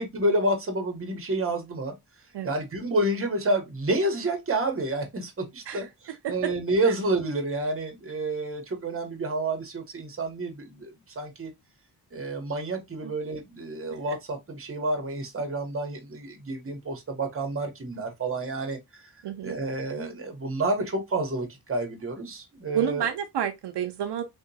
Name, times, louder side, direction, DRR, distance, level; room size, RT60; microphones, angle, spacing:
voice 1, 0.0-1.9 2.4-11.5 12.1-18.8 19.4-23.1, right 2 dB, 35° right, 1.0 m, -29 dB
voice 2, 19.2-19.6 22.7-24.2, right 10 dB, 80° right, 0.6 m, -30 dB
3.5 x 2.8 x 2.6 m
wide cardioid pair, 115°, 41 cm